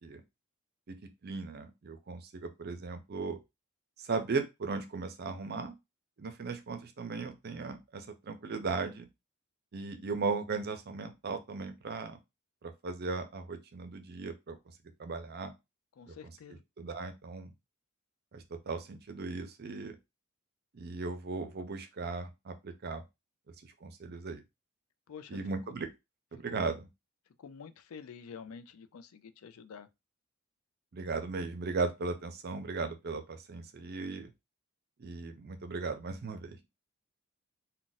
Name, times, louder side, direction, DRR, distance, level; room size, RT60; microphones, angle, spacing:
voice 1, 1.2-3.4 4.0-5.8 6.2-9.1 9.7-12.2 12.6-14.6 15.0-15.5 16.1-16.2 16.8-17.5 18.3-20.0 20.7-23.0 23.8-24.4 25.3-25.9 26.3-26.9 30.9-34.3 35.0-36.6, right 4 dB, 50° right, 0.5 m, -37 dB
voice 2, 16.0-16.6 25.1-25.4 26.5-26.7 27.4-29.9, left 6 dB, 85° left, 0.4 m, -48 dB
2.4 x 2.2 x 3.9 m
head